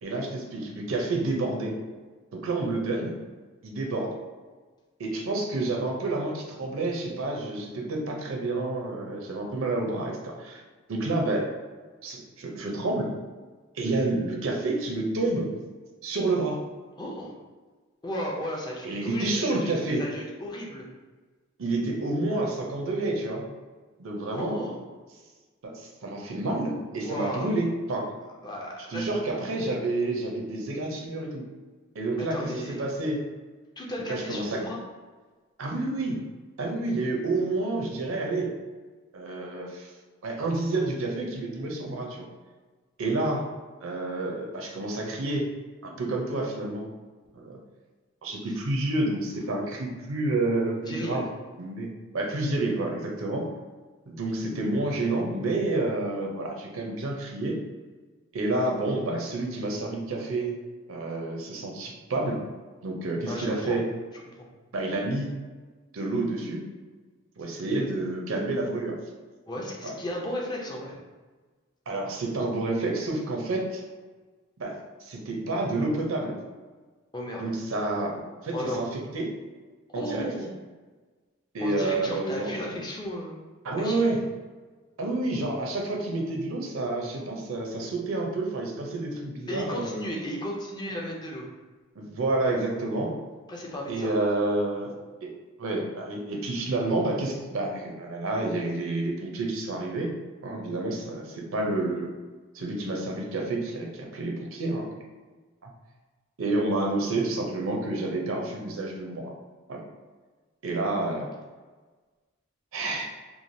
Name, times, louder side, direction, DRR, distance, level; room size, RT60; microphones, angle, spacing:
voice 1, 0.0-1.8 2.3-3.1 3.6-4.2 5.0-10.6 10.9-11.5 12.0-13.1 13.7-15.5 16.0-16.6 18.8-20.0 21.6-23.4 24.0-24.6 25.6-28.1 28.9-31.5 31.9-32.5 32.8-33.2 34.1-34.6 35.6-36.2 36.6-38.6 39.1-39.9 40.2-42.3 43.0-43.5 43.8-45.5 45.8-46.9 47.3-47.6 48.2-51.2 51.6-51.9 52.1-53.5 54.1-57.6 58.3-60.5 60.9-62.4 62.8-63.9 64.7-65.3 65.9-66.6 67.4-69.0 69.8-69.9 71.9-73.8 74.6-76.4 77.4-79.3 79.9-80.3 81.5-82.5 83.6-84.2 85.0-90.0 92.0-93.2 93.9-94.9 95.2-95.3 95.6-100.1 100.4-102.1 102.5-104.9 105.6-105.7 106.4-109.3 109.7-109.8 110.6-111.3 112.7-113.1, right 2 dB, 65° right, 0 dB, 0.6 m, -29 dB
voice 2, 17.0-17.3 18.0-19.7 20.0-20.8 24.3-24.8 27.0-27.5 28.4-29.4 32.2-32.8 33.8-34.8 48.5-48.6 50.9-51.2 63.3-63.8 64.3-64.5 69.5-71.0 77.1-77.5 78.5-78.8 79.9-80.5 81.6-83.4 83.8-84.0 89.5-91.5 93.5-94.1, equal, 20° left, -2 dB, 0.4 m, -34 dB
3.1 x 2.3 x 2.6 m, 1.3 s
head